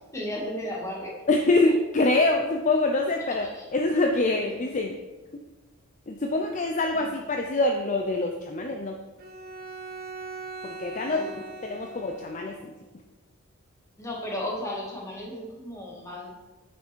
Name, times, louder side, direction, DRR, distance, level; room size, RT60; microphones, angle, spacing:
voice 1, 0.1-1.1 1.6-1.7 3.3-3.7 6.9-7.2 11.1-11.4 11.9-12.1 14.0-16.4, left 1 dB, 15° left, -3 dB, 1.8 m, -35 dB
voice 2, 1.3-4.9 6.1-8.9 10.6-11.2 11.6-12.6, left 2 dB, 35° left, 3 dB, 0.5 m, -25 dB
Bowed string instrument, 9.2-12.7, right 3 dB, 40° right, 1.0 m, -40 dB
8.8 x 6.0 x 4.5 m, 1.2 s
head